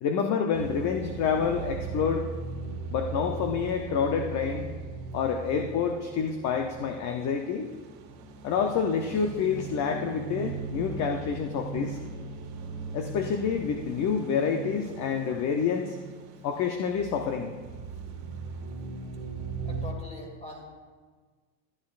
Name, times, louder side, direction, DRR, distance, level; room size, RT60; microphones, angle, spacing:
voice 1, 0.0-2.3 2.9-4.7 5.1-7.7 8.4-12.0 12.9-16.0 16.4-17.5, left 6 dB, 40° left, 4 dB, 0.7 m, -28 dB
sound 1, 0.5-19.9, right 4 dB, 85° right, 1.9 m, -39 dB
voice 2, 19.6-20.6, left 2 dB, 15° left, 0 dB, 2.2 m, -42 dB
13.5 x 10.5 x 2.5 m, 1.4 s
supercardioid pair, 130°, 45 cm